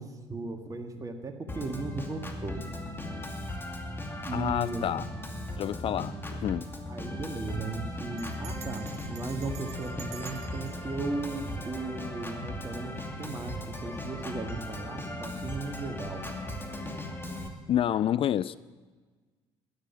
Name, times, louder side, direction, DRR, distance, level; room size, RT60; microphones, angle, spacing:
voice 1, 0.0-2.6 4.2-4.8 6.9-16.3, right 3 dB, 25° right, 1.8 m, -36 dB
Organ, 1.5-17.5, left 1 dB, 15° left, 2.4 m, -37 dB
voice 2, 4.3-5.0 5.6-6.7 17.7-18.6, left 10 dB, 40° left, 0.4 m, -28 dB
Bell, 8.2-12.3, right 10 dB, 55° right, 0.8 m, -50 dB
12.5 x 10.5 x 7.1 m
hypercardioid pair, 55°, 14 cm